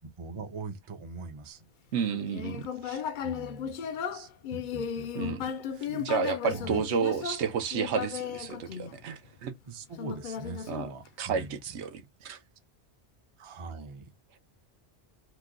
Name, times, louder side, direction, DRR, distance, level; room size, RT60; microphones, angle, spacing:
voice 1, 0.2-1.7 3.2-3.7 4.5-5.4 5.7-6.1 6.5-6.8 9.7-11.6 12.2-12.4 13.4-14.1, right 4 dB, 35° right, 0.5 m, -42 dB
voice 2, 1.9-3.0 4.1-4.3 5.1-5.4 5.9-9.5 10.7-10.9 11.2-12.4, right 6 dB, 75° right, 0.9 m, -31 dB
Human voice, 2.0-9.4 10.0-11.4, left 8 dB, 60° left, 0.5 m, -36 dB
3.0 x 2.2 x 3.6 m
omnidirectional pair, 1.2 m